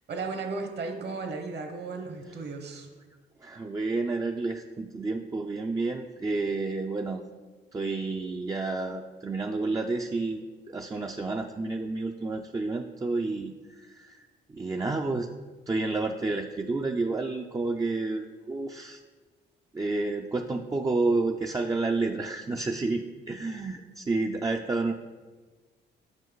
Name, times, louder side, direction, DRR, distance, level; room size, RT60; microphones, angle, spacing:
voice 1, 0.1-2.9, right 4 dB, 55° right, 4 dB, 1.1 m, -35 dB
voice 2, 3.4-7.2 7.7-10.4 10.7-15.3 15.7-19.0 19.7-24.9, right 3 dB, 20° right, 3 dB, 0.4 m, -30 dB
7.2 x 5.3 x 3.9 m, 1.3 s
cardioid pair, 90°, 20 cm